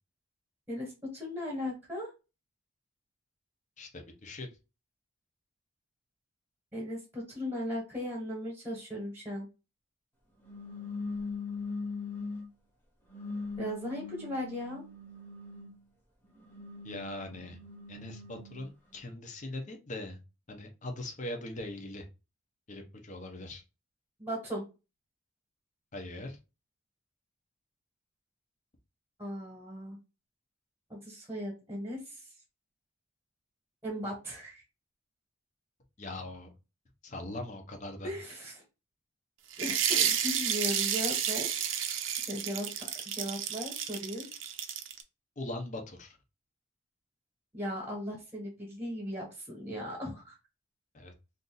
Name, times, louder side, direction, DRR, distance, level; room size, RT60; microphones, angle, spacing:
voice 1, 0.7-2.1 6.7-9.5 13.6-14.8 24.2-24.7 29.2-30.0 30.9-32.2 33.8-34.6 38.0-38.6 39.6-41.9 42.3-42.7 43.1-44.3 47.5-50.4, equal, 10° right, -2 dB, 1.2 m, -37 dB
voice 2, 3.8-4.5 16.8-17.6 17.9-20.2 20.5-22.1 22.7-23.6 25.9-26.4 36.0-36.5 37.0-38.1 45.4-46.2 50.9-51.1, left 1 dB, 35° left, 4 dB, 0.7 m, -41 dB
sound 1, 10.4-12.5 13.1-15.8 16.4-18.7, left 4 dB, 10° left, 1.0 m, -41 dB
sound 2, 39.5-45.0, right 9 dB, 70° right, 0.5 m, -31 dB
2.6 x 2.6 x 3.8 m, 0.29 s
head